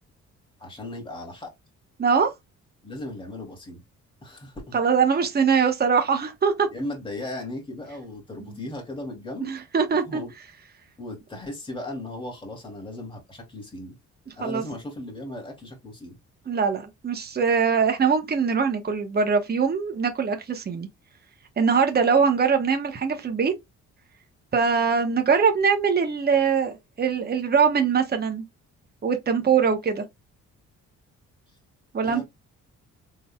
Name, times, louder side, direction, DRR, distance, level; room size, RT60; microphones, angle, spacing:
voice 1, 0.6-1.5 2.8-3.8 4.2-4.8 6.7-9.5 10.1-10.3 11.0-14.0 14.4-16.2 32.0-32.2, left 1 dB, 15° left, 2.6 m, -36 dB
voice 2, 4.7-6.7 9.4-10.2 14.4-14.6 16.5-20.9 21.6-23.5 24.5-28.4 29.0-30.0 31.9-32.2, right 6 dB, 35° right, 1.0 m, -22 dB
4.3 x 3.9 x 2.3 m
cardioid pair, 90°, 30 cm